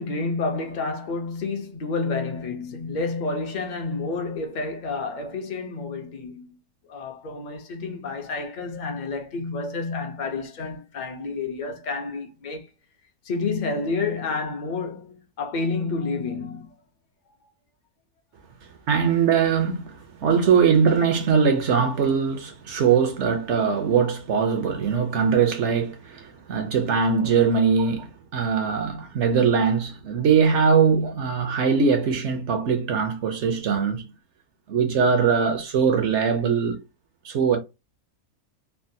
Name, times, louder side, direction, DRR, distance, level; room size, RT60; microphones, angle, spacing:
voice 1, 0.0-6.6 6.9-12.7 13.2-16.7, left 3 dB, 55° left, 0.5 m, -29 dB
voice 2, 18.9-28.1 28.3-34.0 34.7-36.8 37.2-37.6, right 6 dB, 65° right, 0.8 m, -21 dB
3.4 x 2.2 x 2.6 m
omnidirectional pair, 1.6 m